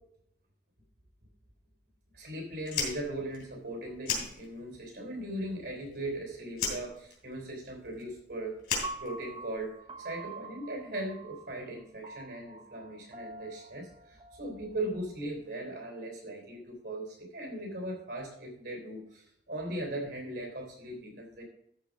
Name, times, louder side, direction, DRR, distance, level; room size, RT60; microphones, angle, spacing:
voice 1, 2.1-8.6 9.0-21.4, right 1 dB, 70° right, 2 dB, 3.3 m, -39 dB
Fire, 2.6-4.9 5.2-6.2 6.5-9.7, left 5 dB, 65° left, 3.7 m, -36 dB
Piano, 8.8-15.0, right 3 dB, 30° right, 0.7 m, -46 dB
13.0 x 4.7 x 5.1 m, 0.73 s
head